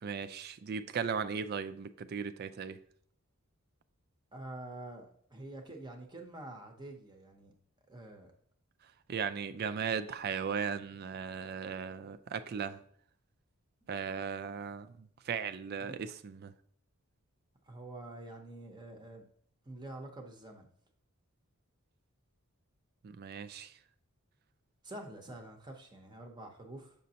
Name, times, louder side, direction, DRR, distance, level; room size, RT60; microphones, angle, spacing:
voice 1, 0.0-2.8 9.1-12.8 13.9-16.5 23.0-23.7, right 6 dB, 45° right, 0.3 m, -37 dB
voice 2, 4.3-7.5 7.9-8.3 15.9-16.0 17.7-19.3 19.7-20.7 24.8-26.9, right 2 dB, 20° right, 0.7 m, -47 dB
6.9 x 5.1 x 2.8 m
head